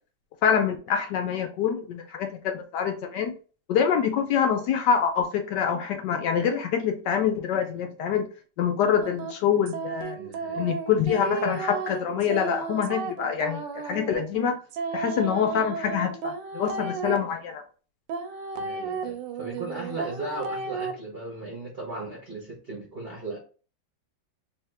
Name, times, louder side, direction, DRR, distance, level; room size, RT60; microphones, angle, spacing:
voice 1, 0.4-3.3 3.7-8.3 8.6-10.2 10.6-14.6 14.9-17.6, left 8 dB, 75° left, 5 dB, 1.1 m, -25 dB
sound 1, 9.0-17.2 18.1-20.9, right 5 dB, 75° right, 1.2 m, -33 dB
voice 2, 10.2-10.7 18.6-23.4, right 2 dB, 40° right, -4 dB, 0.9 m, -37 dB
3.5 x 2.8 x 3.3 m, 0.38 s
omnidirectional pair, 2.1 m